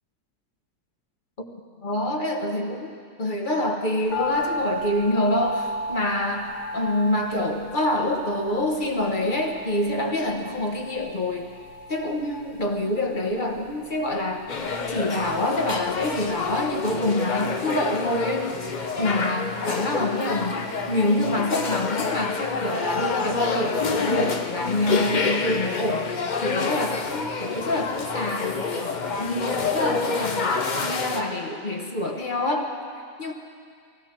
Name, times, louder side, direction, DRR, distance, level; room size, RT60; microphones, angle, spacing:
voice 1, 1.8-2.9 3.2-11.5 11.9-14.5 14.9-20.6 20.9-30.5 30.8-32.7 33.2-33.3, left 1 dB, 30° left, 3 dB, 1.1 m, -26 dB
sound 1, 4.1-16.4 16.7-16.8, left 1 dB, 90° left, 2.4 m, -35 dB
sound 2, 14.5-31.2, left 4 dB, 60° left, 0.4 m, -28 dB
20.5 x 15.5 x 4.4 m, 2.2 s
omnidirectional pair, 1.9 m